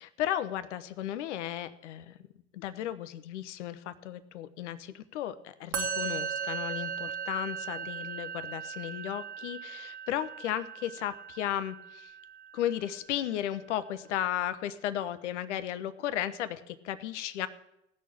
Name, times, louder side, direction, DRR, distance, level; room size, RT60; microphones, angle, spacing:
voice 1, 0.2-2.2 2.5-12.1 12.5-17.5, left 11 dB, 75° left, 13 dB, 0.9 m, -35 dB
Musical instrument, 5.7-13.0, right 7 dB, 65° right, 1.9 m, -38 dB
16.0 x 6.5 x 8.6 m, 0.85 s
hypercardioid pair, 70°, 35 cm